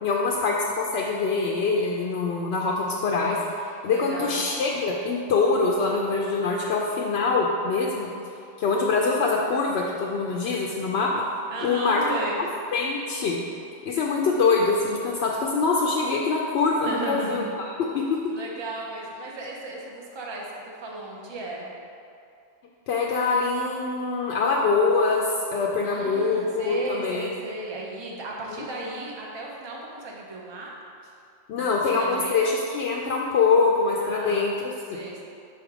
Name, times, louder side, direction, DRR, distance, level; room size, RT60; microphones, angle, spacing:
voice 1, 0.0-8.1 8.6-11.1 11.6-12.0 12.7-13.4 13.9-17.7 17.9-18.2 22.9-27.3 28.5-28.6 31.5-35.0, left 4 dB, 70° left, -2 dB, 0.8 m, -24 dB
voice 2, 3.9-4.4 11.5-12.4 16.8-17.5 18.3-21.7 25.8-30.7 31.5-32.3 34.0-34.5 34.9-35.2, right 2 dB, 25° right, -3 dB, 0.7 m, -35 dB
6.1 x 3.5 x 4.8 m, 2.5 s
omnidirectional pair, 1.2 m